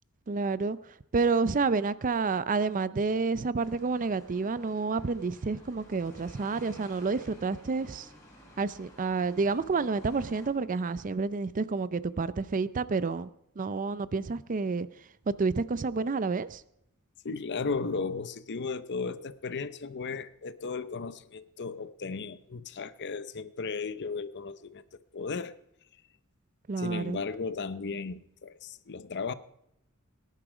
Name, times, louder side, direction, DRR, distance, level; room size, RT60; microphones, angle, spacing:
voice 1, 0.3-8.1 8.6-13.3 13.6-16.6 26.7-27.2, right 4 dB, 35° right, 0.5 m, -29 dB
sound 1, 3.5-10.5, equal, 15° left, 4.8 m, -53 dB
voice 2, 17.2-24.8 25.1-25.6 26.8-29.3, left 4 dB, 50° left, 0.7 m, -35 dB
19.0 x 11.0 x 5.0 m
head